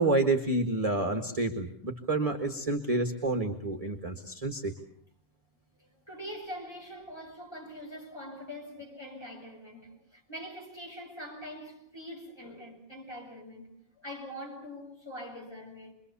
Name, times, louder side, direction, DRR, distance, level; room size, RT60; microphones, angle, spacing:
voice 1, 0.0-4.7, right 2 dB, 25° right, 1.7 m, -29 dB
voice 2, 5.8-15.9, equal, 15° left, 7.5 m, -43 dB
28.5 x 23.0 x 7.0 m
omnidirectional pair, 1.5 m